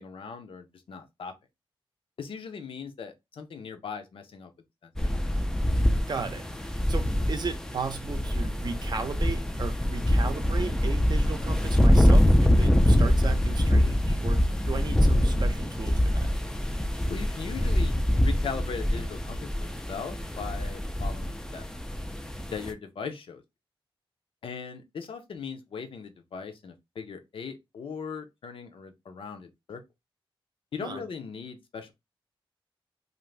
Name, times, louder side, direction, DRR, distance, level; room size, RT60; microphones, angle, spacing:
voice 1, 0.0-1.3 2.2-4.5 4.8-5.1 17.1-21.7 22.5-23.4 24.4-29.8 30.7-31.9, left 6 dB, 70° left, 0.6 m, -39 dB
sound 1, 5.0-22.7, left 1 dB, 5° left, 0.3 m, -24 dB
voice 2, 6.1-16.3 30.8-31.0, right 5 dB, 50° right, 0.5 m, -36 dB
2.5 x 2.5 x 3.2 m
wide cardioid pair, 155°, 9 cm